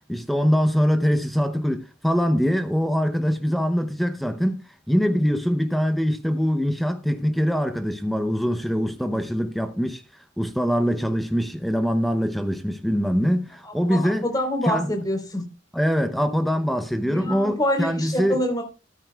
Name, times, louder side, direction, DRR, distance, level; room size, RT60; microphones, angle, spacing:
voice 1, 0.1-10.0 10.4-14.3 14.6-14.9 15.7-18.4, equal, ahead, 0.7 m, -23 dB
voice 2, 13.6-15.4 17.1-18.6, left 1 dB, 20° left, 3.9 m, -26 dB
13.5 x 13.5 x 2.3 m
head